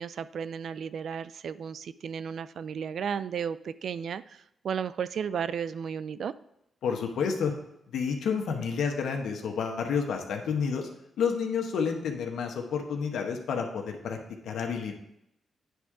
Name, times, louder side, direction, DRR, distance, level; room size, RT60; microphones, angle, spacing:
voice 1, 0.0-6.3, right 7 dB, 70° right, 15 dB, 0.3 m, -34 dB
voice 2, 6.8-7.5 7.9-10.9 11.2-14.2 14.4-14.9, left 6 dB, 80° left, 3 dB, 1.1 m, -30 dB
9.5 x 3.7 x 4.8 m, 0.80 s
cardioid pair, 65°, 0 cm